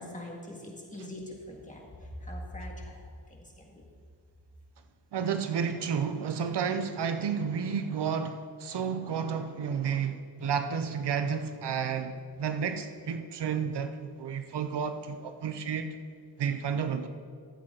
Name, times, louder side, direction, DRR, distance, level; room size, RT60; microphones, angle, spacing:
voice 1, 0.0-1.8 2.3-2.7, left 1 dB, 15° left, 1.8 m, -41 dB
voice 2, 5.1-16.0 16.4-17.1, right 6 dB, 70° right, 0.7 m, -31 dB
13.5 x 7.8 x 3.8 m
wide cardioid pair, 105°, 43 cm